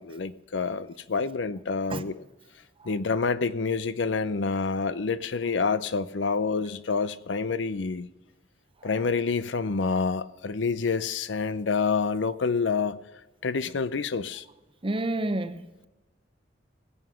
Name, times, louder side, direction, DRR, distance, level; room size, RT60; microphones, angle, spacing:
voice 1, 0.0-2.2 2.8-8.1 8.8-13.0 13.4-14.4, left 4 dB, 75° left, 0.6 m, -28 dB
voice 2, 14.8-15.9, right 1 dB, 30° right, 0.8 m, -30 dB
20.0 x 7.8 x 5.7 m
head